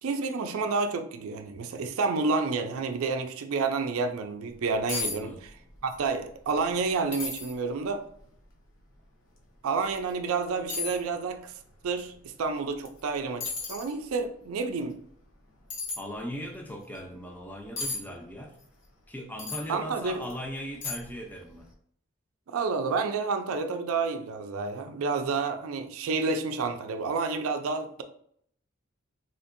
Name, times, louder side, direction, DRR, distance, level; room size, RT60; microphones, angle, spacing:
voice 1, 0.0-5.5 5.8-8.0 9.6-11.5 11.8-15.0 19.7-20.2 22.5-28.0, right 4 dB, 85° right, 0.4 m, -29 dB
sound 1, 4.5-4.6 4.9-5.2 5.5-6.0 6.4-6.5 7.1-7.5 8.2-8.3 9.8-9.9 10.7-11.0 12.8-13.0 13.4-13.9 15.7-16.0 17.8-18.0 19.4-19.7 20.2-20.3 20.8-21.2 21.5-21.6, left 4 dB, 75° left, 0.8 m, -33 dB
voice 2, 16.0-18.5 19.1-21.7, equal, 10° left, 0.3 m, -38 dB
3.7 x 2.6 x 2.5 m
head